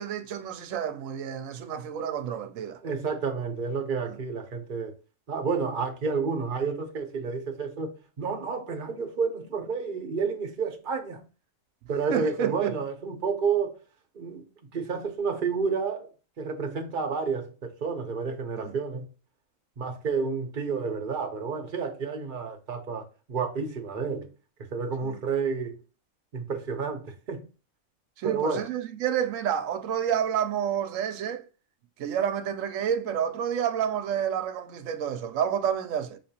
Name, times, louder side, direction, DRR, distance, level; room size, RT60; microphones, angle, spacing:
voice 1, 0.0-2.8 4.1-4.2 12.1-12.8 18.6-18.8 25.0-25.2 28.2-31.4 32.0-36.2, right 9 dB, 70° right, 0.9 m, -29 dB
voice 2, 2.8-4.9 5.3-11.2 11.9-13.8 14.1-16.1 16.4-19.1 19.8-24.3 24.7-25.8 26.3-27.4 28.2-28.6, right 5 dB, 45° right, 0.9 m, -30 dB
5.9 x 3.2 x 2.8 m
omnidirectional pair, 1.5 m